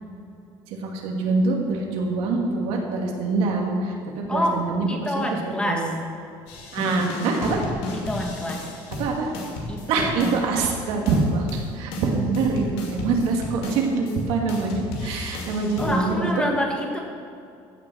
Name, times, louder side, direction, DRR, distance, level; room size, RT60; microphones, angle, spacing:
voice 1, 0.8-4.9 5.6-5.9 6.7-7.6 9.0-9.3 9.9-16.6, right 3 dB, 75° right, 1 dB, 2.2 m, -24 dB
voice 2, 4.3-6.0 7.9-8.7 9.7-10.7 15.8-17.0, left 1 dB, 10° left, 1 dB, 1.5 m, -28 dB
sound 1, 6.5-10.7 11.1-14.2 14.5-16.1, left 2 dB, 75° left, 2.4 m, -33 dB
15.0 x 7.2 x 6.3 m, 2.5 s
cardioid pair, 145°, 10 cm